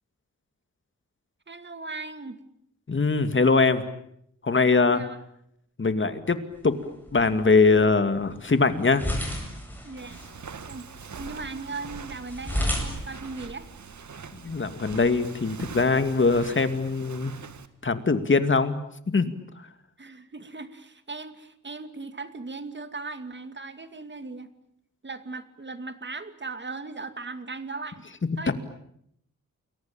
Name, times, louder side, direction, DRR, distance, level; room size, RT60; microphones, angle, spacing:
voice 1, 1.5-2.4 4.9-5.2 9.8-10.3 10.7-13.7 20.0-24.5 25.0-28.0 28.4-28.5, right 3 dB, 35° right, 10 dB, 2.5 m, -38 dB
voice 2, 2.9-3.8 4.4-5.0 5.8-6.4 6.6-6.8 7.1-9.0 14.4-17.3 17.8-18.8 19.1-19.3 28.5-28.6, left 4 dB, 40° left, 10 dB, 2.4 m, -22 dB
sound 1, 6.5-14.6, left 1 dB, 5° left, 7.9 m, -35 dB
Walk footsteps, 10.0-17.7, right 6 dB, 65° right, 2.1 m, -42 dB
29.5 x 22.5 x 9.0 m, 0.73 s
wide cardioid pair, 120°, 31 cm